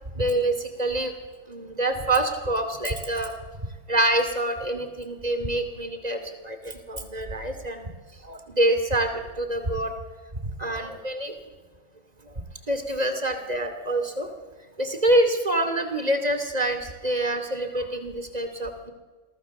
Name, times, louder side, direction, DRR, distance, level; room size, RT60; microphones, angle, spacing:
voice 1, 0.1-1.1 1.5-3.3 3.9-7.9 8.2-9.9 10.4-11.3 12.2-14.3 14.8-18.9, right 1 dB, 25° right, 7 dB, 2.8 m, -26 dB
28.5 x 22.5 x 7.2 m, 1.3 s
omnidirectional pair, 1.6 m